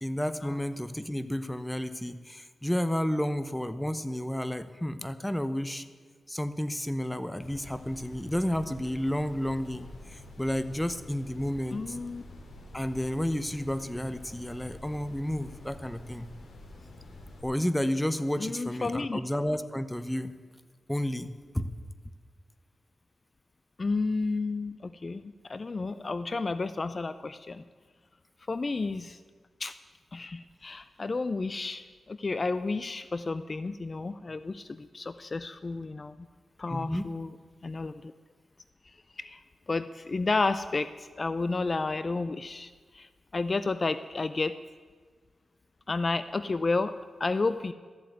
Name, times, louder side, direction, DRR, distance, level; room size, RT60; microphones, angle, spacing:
voice 1, 0.0-5.8 6.3-12.0 12.7-16.3 17.4-20.3 20.9-21.3 21.5-21.7 36.7-37.1, left 1 dB, 5° left, 12 dB, 0.8 m, -31 dB
sound 1, 7.4-17.4, left 2 dB, 70° left, 2.5 m, -48 dB
voice 2, 11.7-12.2 18.4-19.2 23.8-27.6 28.5-29.2 29.6-29.7 30.1-36.2 36.6-37.4 37.6-38.1 38.8-39.4 39.7-44.6 45.9-46.9 47.2-47.7, left 3 dB, 40° left, 13 dB, 0.4 m, -31 dB
13.5 x 7.7 x 9.4 m, 1.5 s
cardioid pair, 80°, 0 cm